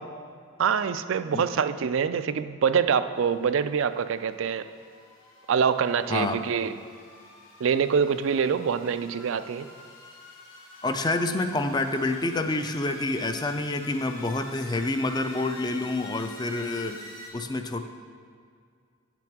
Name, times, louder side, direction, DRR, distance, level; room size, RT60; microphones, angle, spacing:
voice 1, 0.6-4.7 5.5-6.7 7.6-9.7, right 6 dB, 70° right, 12 dB, 0.4 m, -25 dB
sound 1, 3.1-17.3, left 2 dB, 75° left, 1.8 m, -48 dB
voice 2, 10.8-17.1 17.3-17.8, left 2 dB, 20° left, 7 dB, 0.4 m, -28 dB
8.7 x 6.0 x 6.0 m, 2.2 s
head